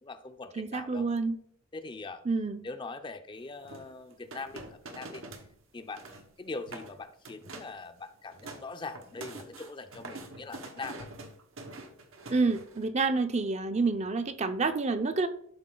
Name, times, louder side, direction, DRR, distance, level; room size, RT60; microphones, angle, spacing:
voice 1, 0.0-1.1 1.7-2.2 2.6-5.2 5.7-11.1, left 3 dB, 25° left, 9 dB, 0.5 m, -42 dB
voice 2, 0.6-1.4 2.3-2.6 12.3-15.3, right 3 dB, 35° right, 9 dB, 0.5 m, -28 dB
sound 1, 3.6-5.5 5.8-6.3 6.6-6.9 7.2-7.8 8.1-12.9, right 2 dB, 85° right, 1.3 m, -45 dB
11.5 x 4.3 x 3.8 m, 0.64 s
head